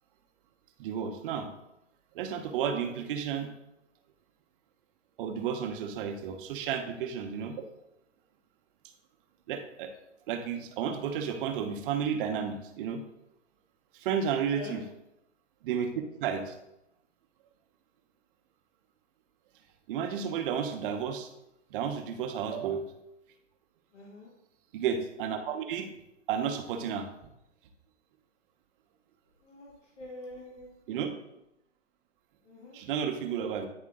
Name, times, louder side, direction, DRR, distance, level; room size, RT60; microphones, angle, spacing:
voice 1, 0.8-1.5 2.1-3.5 5.2-7.7 9.5-9.9 10.3-13.0 13.9-14.8 15.6-15.9 16.2-16.5 19.9-21.3 21.7-23.0 24.7-25.9 26.3-27.1 30.9-31.1 32.7-33.7, right 7 dB, 45° right, 6 dB, 1.0 m, -32 dB
voice 2, 23.9-24.3 29.4-30.8 32.4-32.8, left 2 dB, 70° left, -5 dB, 2.1 m, -45 dB
9.6 x 3.7 x 3.7 m, 0.85 s
hypercardioid pair, 125°, 37 cm